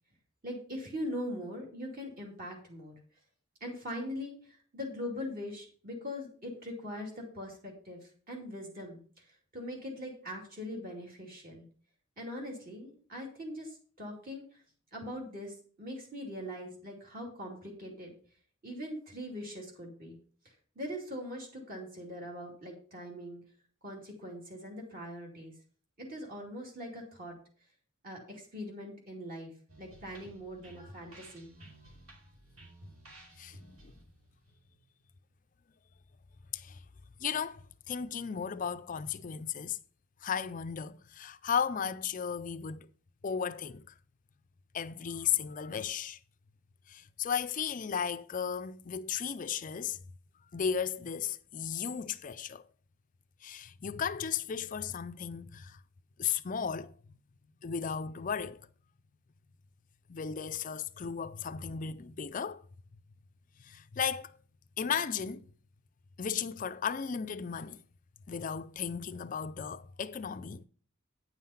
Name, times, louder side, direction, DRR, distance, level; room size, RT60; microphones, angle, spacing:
voice 1, 0.4-2.9 3.6-8.0 8.3-9.0 9.3-11.6 12.2-14.6 14.9-18.1 18.6-20.2 20.8-23.4 23.8-25.5 26.0-27.4 28.0-29.5 29.8-31.5, equal, 40° right, 2.5 m, -41 dB
sound 1, 29.7-35.3, right 1 dB, 75° right, 2.7 m, -55 dB
voice 2, 33.4-33.9 36.5-36.8 37.2-39.8 40.2-42.9 43.2-43.8 44.7-46.2 46.9-50.0 50.5-52.6 53.4-55.8 56.2-56.9 57.6-58.6 60.1-62.6 63.6-64.4 64.8-65.5 66.2-67.8 68.3-70.6, left 7 dB, 40° left, 0.4 m, -35 dB
9.4 x 5.6 x 5.6 m
head